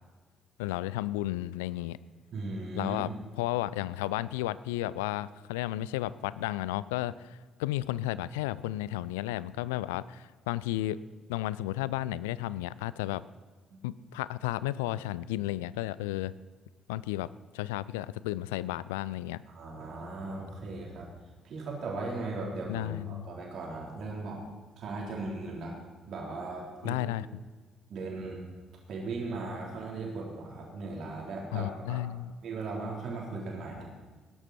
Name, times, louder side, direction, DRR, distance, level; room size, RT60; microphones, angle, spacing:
voice 1, 0.6-2.0 2.8-3.1 3.4-11.0 11.3-13.2 13.8-16.3 16.9-17.3 17.5-19.4 22.7-23.3 26.8-27.3 31.5-32.3, left 15 dB, 75° left, 18 dB, 0.3 m, -33 dB
voice 2, 2.3-3.1 13.7-13.8 19.5-21.1 21.4-24.4 24.8-25.8 26.1-27.0 27.9-28.4 28.9-32.0 32.4-33.8, right 3 dB, 55° right, -2 dB, 4.1 m, -37 dB
19.0 x 11.0 x 4.4 m, 1.3 s
figure-of-eight pair, 45°, 0 cm